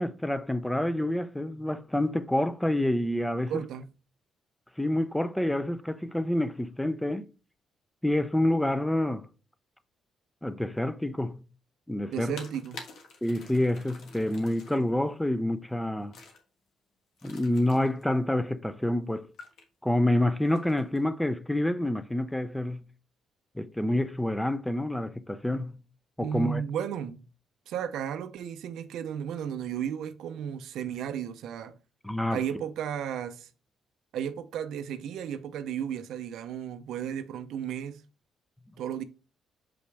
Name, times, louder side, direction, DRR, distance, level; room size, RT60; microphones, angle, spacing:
voice 1, 0.0-3.5 4.8-7.2 8.0-9.3 10.4-11.4 11.9-12.3 13.2-16.1 17.2-19.3 19.8-22.9 23.6-25.8 26.2-26.6 32.0-32.4, left 1 dB, 5° left, 0.5 m, -28 dB
voice 2, 3.5-3.9 12.1-12.8 26.2-27.3 27.7-31.8 32.3-33.5 34.1-38.0 38.8-39.0, right 9 dB, 80° right, 0.6 m, -34 dB
sound 1, 12.3-14.9 16.1-16.4 17.2-18.1 19.3-19.6 20.4-21.0, left 3 dB, 70° left, 1.3 m, -48 dB
5.8 x 5.2 x 3.4 m
cardioid pair, 90°, 0 cm